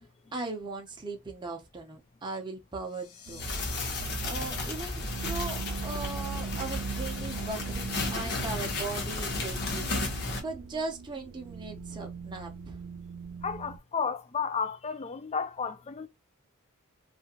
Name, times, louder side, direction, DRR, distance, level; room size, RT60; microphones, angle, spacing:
voice 1, 0.3-3.4 4.2-12.8, right 3 dB, 20° right, 0.5 m, -39 dB
sound 1, 2.8-4.0, left 6 dB, 80° left, 1.0 m, -44 dB
sound 2, 3.3-13.8, right 5 dB, 75° right, 0.5 m, -41 dB
sound 3, 3.4-10.4, left 2 dB, 50° left, 0.9 m, -33 dB
voice 2, 13.4-16.1, left 6 dB, 30° left, 0.4 m, -32 dB
2.7 x 2.4 x 2.8 m
head